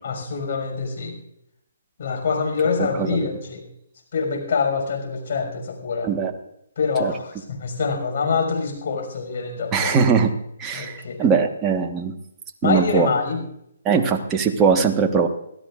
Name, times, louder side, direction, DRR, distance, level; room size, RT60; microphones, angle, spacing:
voice 1, 0.0-1.2 2.0-3.6 4.1-6.1 6.8-10.0 10.7-11.3 12.6-13.4, left 5 dB, 55° left, 3 dB, 6.0 m, -25 dB
voice 2, 2.8-3.3 6.0-6.3 7.0-7.1 9.7-10.3 10.6-12.1 12.6-13.1 13.8-15.3, right 5 dB, 20° right, 3 dB, 1.4 m, -20 dB
25.5 x 16.0 x 2.5 m, 0.76 s
hypercardioid pair, 145°, 0 cm